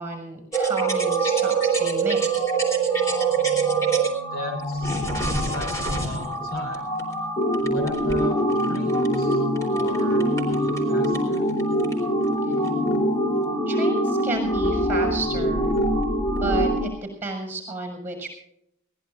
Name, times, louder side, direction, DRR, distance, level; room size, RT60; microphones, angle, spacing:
voice 1, 0.0-2.2 13.7-15.7 16.4-18.3, right 3 dB, 10° right, 4 dB, 6.3 m, -32 dB
sound 1, 0.5-16.9, right 2 dB, 15° left, 3.6 m, -23 dB
voice 2, 4.3-6.9 7.6-8.4 8.7-9.5 9.7-11.5, left 2 dB, 50° left, 4 dB, 3.8 m, -36 dB
22.5 x 18.5 x 2.6 m, 0.76 s
head